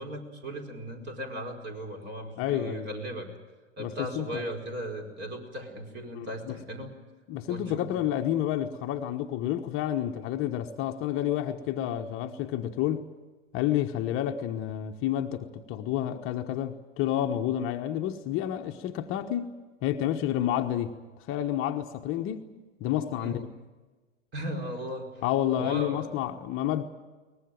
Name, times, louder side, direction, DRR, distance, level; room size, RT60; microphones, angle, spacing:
voice 1, 0.0-3.3 3.8-6.9 7.5-7.9 23.2-23.5 24.3-25.1 25.6-26.1, right 1 dB, 30° right, 4 dB, 4.8 m, -37 dB
voice 2, 2.4-2.9 3.8-4.4 6.1-6.6 7.3-13.1 13.5-19.5 19.8-20.9 21.3-22.5 22.8-23.5 25.2-26.8, left 11 dB, 35° left, 5 dB, 1.2 m, -29 dB
23.0 x 19.5 x 9.0 m, 1.3 s
figure-of-eight pair, 100°, 36 cm